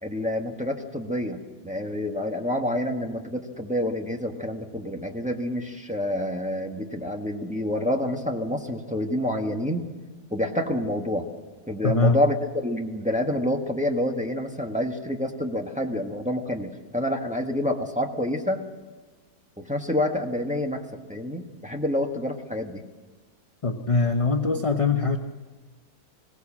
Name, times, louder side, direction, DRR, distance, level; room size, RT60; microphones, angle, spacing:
voice 1, 0.0-9.8 10.3-11.3 11.7-12.3 12.6-18.6 19.6-20.8 21.1-22.8, left 1 dB, 5° right, 2 dB, 1.5 m, -28 dB
voice 2, 11.8-12.2 23.6-25.2, left 3 dB, 25° left, 5 dB, 0.8 m, -22 dB
22.0 x 17.5 x 7.4 m, 1.3 s
omnidirectional pair, 1.7 m